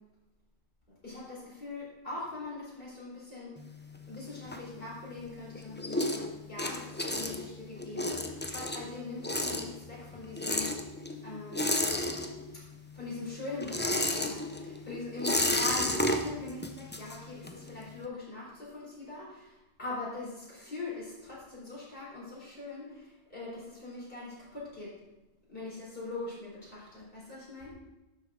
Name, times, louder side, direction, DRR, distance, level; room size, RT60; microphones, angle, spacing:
voice 1, 1.0-3.5 4.1-10.7 11.2-11.8 12.5-12.6 12.9-25.0 25.5-27.7, left 2 dB, 55° left, -6 dB, 4.6 m, -42 dB
sound 1, 3.6-5.2 5.5-12.7 13.0-17.7, left 1 dB, 10° left, 0.6 m, -32 dB
12.0 x 7.8 x 3.8 m, 0.98 s
omnidirectional pair, 1.1 m